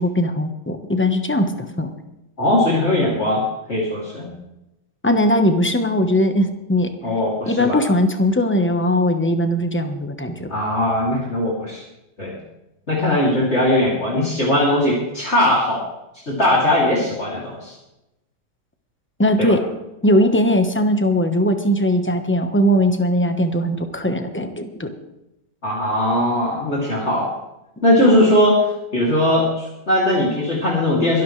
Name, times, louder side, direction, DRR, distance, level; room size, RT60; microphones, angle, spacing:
voice 1, 0.0-1.9 5.0-6.9 7.5-10.5 19.2-19.6 20.0-24.9 28.1-28.2, left 1 dB, 10° left, 6 dB, 0.9 m, -19 dB
voice 2, 2.4-3.4 3.7-4.4 7.0-7.8 10.5-11.8 12.2-12.4 12.9-15.8 16.3-17.7 19.4-19.5 25.6-27.3 27.8-28.7 28.9-31.2, left 1 dB, 35° left, -6 dB, 3.3 m, -19 dB
23.0 x 12.5 x 3.3 m, 0.92 s
omnidirectional pair, 1.9 m